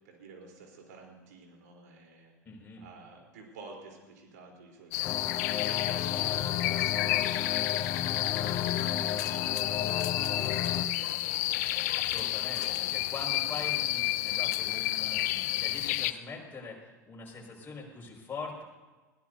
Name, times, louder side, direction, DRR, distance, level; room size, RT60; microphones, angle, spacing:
voice 1, 0.0-2.3 2.8-6.3 6.6-12.0 12.6-13.1 13.6-14.0, right 3 dB, 65° right, 1 dB, 3.9 m, -52 dB
voice 2, 2.4-2.9 6.1-6.4 11.9-18.6, left 4 dB, 20° left, -2 dB, 5.8 m, -43 dB
sound 1, 4.9-16.1, left 16 dB, 60° left, 0.6 m, -31 dB
sound 2, 5.0-10.9, left 8 dB, 35° left, 0.9 m, -33 dB
21.5 x 16.5 x 2.8 m, 1.2 s
figure-of-eight pair, 80°, 10 cm